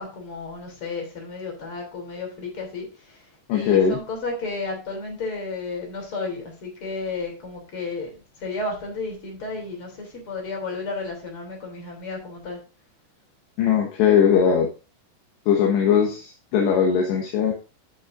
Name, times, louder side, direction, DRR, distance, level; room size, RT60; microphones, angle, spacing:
voice 1, 0.0-12.6, left 3 dB, 30° left, 2 dB, 3.5 m, -33 dB
voice 2, 3.5-4.0 13.6-14.7 15.5-17.5, left 7 dB, 75° left, -1 dB, 3.5 m, -19 dB
14.0 x 6.3 x 2.6 m, 0.31 s
omnidirectional pair, 5.2 m